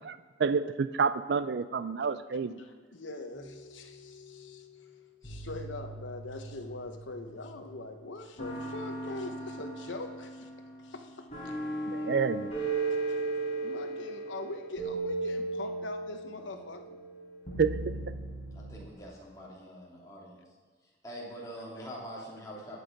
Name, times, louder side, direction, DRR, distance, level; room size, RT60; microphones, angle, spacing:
voice 1, 0.0-2.5 11.9-12.5 17.6-18.0, right 5 dB, 60° right, 13 dB, 0.4 m, -29 dB
voice 2, 2.5-4.7 5.2-10.5 10.8-11.6 13.6-17.0, left 2 dB, 85° left, 5 dB, 1.0 m, -42 dB
sound 1, 3.3-4.5 5.2-7.8 8.4-18.8, right 3 dB, 35° left, 4.6 m, -37 dB
voice 3, 18.5-20.4 21.0-22.8, equal, 20° left, -4 dB, 2.9 m, -44 dB
19.5 x 6.7 x 5.3 m, 1.4 s
head